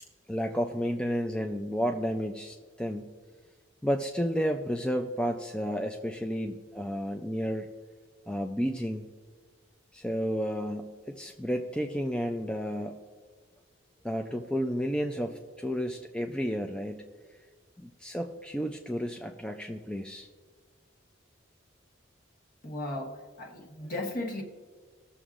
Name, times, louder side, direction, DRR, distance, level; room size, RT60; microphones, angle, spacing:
voice 1, 0.3-3.1 3.8-7.7 8.3-9.1 9.9-13.0 14.0-17.0 17.8-20.3, equal, 5° left, 3 dB, 0.4 m, -32 dB
voice 2, 22.6-24.4, left 1 dB, 45° left, 2 dB, 1.2 m, -36 dB
20.0 x 6.9 x 2.5 m, 1.5 s
head